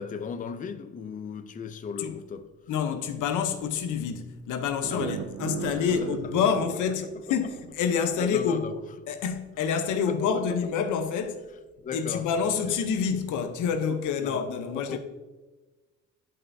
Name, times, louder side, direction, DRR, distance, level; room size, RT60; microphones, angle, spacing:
voice 1, 0.0-2.5 4.9-6.3 7.3-7.4 8.2-8.7 10.1-10.6 11.8-12.3 12.6-12.8 14.2-14.4 14.8-15.0, left 6 dB, 25° left, 0.5 m, -37 dB
voice 2, 2.7-8.7 9.1-11.4 11.9-15.0, left 6 dB, 85° left, 0.8 m, -27 dB
sound 1, 4.8-7.9, right 9 dB, 55° right, 0.4 m, -37 dB
11.0 x 5.5 x 2.7 m
cardioid pair, 90°, 30 cm